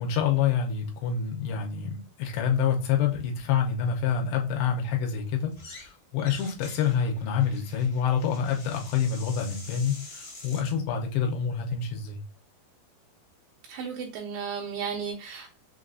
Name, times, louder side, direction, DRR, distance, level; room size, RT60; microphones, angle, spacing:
voice 1, 0.0-12.2, left 7 dB, 80° left, 2 dB, 2.6 m, -27 dB
sound 1, 5.5-5.9 6.2-10.7, left 2 dB, 55° left, 1.3 m, -46 dB
voice 2, 13.7-15.6, right 6 dB, 80° right, 0 dB, 2.7 m, -34 dB
6.5 x 2.5 x 2.3 m, 0.33 s
omnidirectional pair, 5.1 m